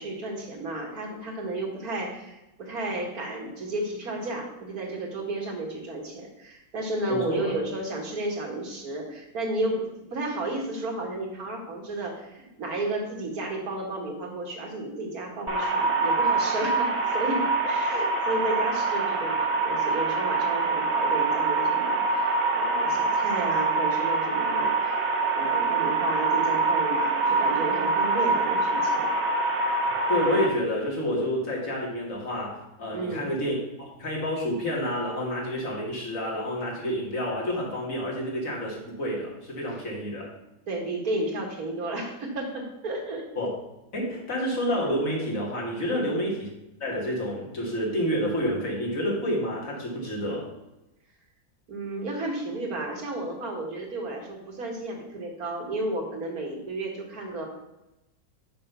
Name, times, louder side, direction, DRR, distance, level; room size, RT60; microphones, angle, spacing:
voice 1, 0.0-25.0 25.3-29.1 32.9-33.3 40.7-43.3 45.9-46.1 51.7-57.5, right 2 dB, 75° right, 1 dB, 2.3 m, -32 dB
voice 2, 7.1-7.5 30.1-40.3 43.3-43.5 43.9-46.5 46.8-50.5, equal, 60° left, -3 dB, 2.7 m, -29 dB
sound 1, 15.5-30.5, right 3 dB, 50° right, 1.6 m, -25 dB
6.7 x 5.6 x 6.8 m, 0.96 s
omnidirectional pair, 1.6 m